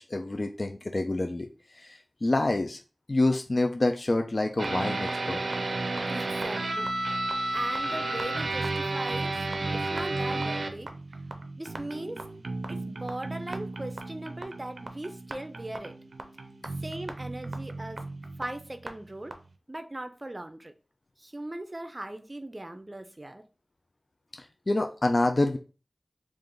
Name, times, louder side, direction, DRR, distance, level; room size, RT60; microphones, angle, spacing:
voice 1, 0.0-1.5 1.7-2.8 3.1-5.4 24.4-25.6, left 2 dB, 45° left, 5 dB, 0.3 m, -27 dB
sound 1, 4.6-18.9 19.3-19.4, right 2 dB, 85° right, 0.5 m, -33 dB
voice 2, 6.1-7.2 7.5-9.4 9.7-10.9 11.6-12.2 12.7-15.9 16.8-18.0 18.4-19.3 19.7-20.7 21.2-23.4, right 1 dB, 30° right, 8 dB, 0.5 m, -39 dB
3.3 x 2.5 x 3.8 m, 0.35 s
wide cardioid pair, 60°, 0 cm